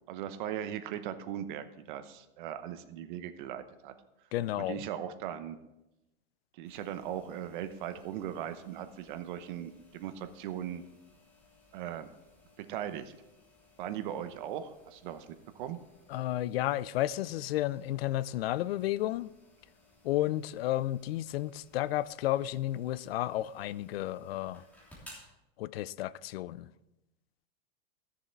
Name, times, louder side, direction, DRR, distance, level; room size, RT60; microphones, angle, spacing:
voice 1, 0.1-3.9 4.6-5.6 6.6-10.8 11.7-12.1 12.6-13.1 13.8-15.3 15.5-15.8, right 10 dB, 55° right, 1.0 m, -39 dB
voice 2, 4.3-4.8 16.1-19.3 20.0-24.6 25.6-26.7, left 14 dB, 85° left, 0.5 m, -32 dB
sound 1, 6.6-25.3, left 1 dB, 5° left, 3.1 m, -61 dB
14.0 x 7.0 x 4.5 m
supercardioid pair, 160°, 29 cm